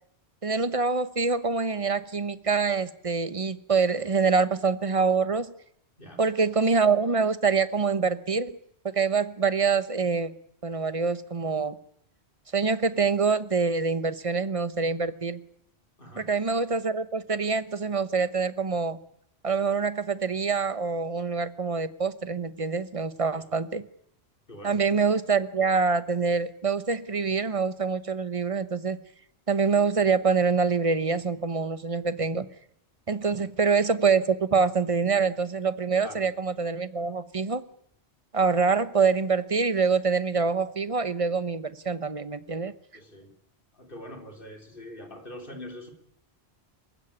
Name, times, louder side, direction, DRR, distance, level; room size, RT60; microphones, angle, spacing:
voice 1, 0.4-5.5 6.2-8.6 8.8-10.3 10.6-11.7 12.5-15.4 16.2-19.0 19.4-23.8 24.6-29.0 29.5-32.5 33.1-37.6 38.3-42.7, right 5 dB, 35° right, 13 dB, 1.0 m, -25 dB
voice 2, 16.0-16.3 23.3-23.5 24.5-24.8 33.3-33.5 36.0-36.3 42.9-43.3 43.7-45.9, left 1 dB, 55° left, 4 dB, 3.6 m, -43 dB
26.5 x 16.0 x 9.9 m, 0.75 s
omnidirectional pair, 1.1 m